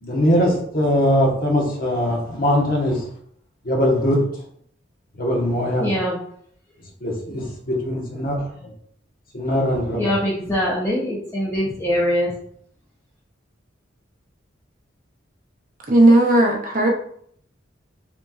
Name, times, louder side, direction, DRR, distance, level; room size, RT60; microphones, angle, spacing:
voice 1, 0.0-3.0 3.6-4.2 5.2-5.9 7.0-8.7 9.3-10.1, equal, 50° left, -2 dB, 1.1 m, -21 dB
voice 2, 5.8-6.2 9.9-12.3, equal, 15° left, -5 dB, 0.6 m, -22 dB
voice 3, 15.9-16.9, right 1 dB, 45° right, 0 dB, 0.8 m, -15 dB
5.9 x 2.9 x 2.4 m, 0.65 s
head